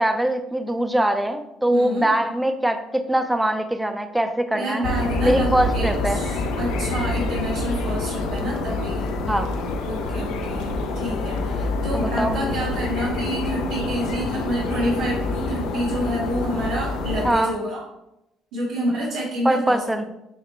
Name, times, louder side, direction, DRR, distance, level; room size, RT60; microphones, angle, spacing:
voice 1, 0.0-4.8 5.2-6.2 9.3-9.5 11.9-12.4 17.2-17.5 19.4-20.0, right 1 dB, 10° right, 8 dB, 0.4 m, -22 dB
voice 2, 1.7-2.1 4.5-9.2 9.9-17.8 18.5-19.8, equal, 85° right, -8 dB, 1.2 m, -28 dB
sound 1, 4.8-17.3, left 2 dB, 80° left, 0.4 m, -26 dB
4.9 x 2.1 x 3.2 m, 0.86 s
supercardioid pair, 85°, 0 cm